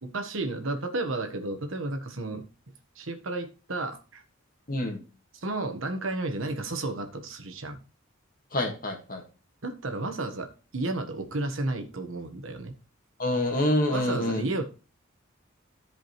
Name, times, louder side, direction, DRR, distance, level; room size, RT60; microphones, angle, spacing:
voice 1, 0.0-2.4 2.9-4.2 5.4-7.8 9.6-12.8 13.9-14.6, right 2 dB, 80° right, 6 dB, 1.4 m, -32 dB
voice 2, 4.7-5.0 8.5-9.2 13.2-14.4, left 1 dB, 45° left, 4 dB, 1.8 m, -27 dB
13.5 x 5.1 x 3.2 m, 0.34 s
head